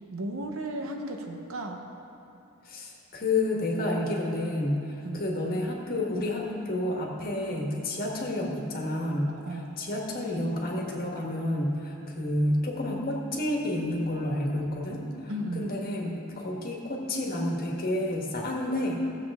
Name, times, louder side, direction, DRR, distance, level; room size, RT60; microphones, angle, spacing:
voice 1, 0.1-1.8 5.0-5.2 9.4-9.7 15.3-15.7, right 1 dB, 65° right, 3 dB, 1.0 m, -35 dB
voice 2, 2.6-19.0, left 1 dB, 45° left, -1 dB, 1.5 m, -30 dB
15.5 x 7.4 x 3.6 m, 2.7 s
head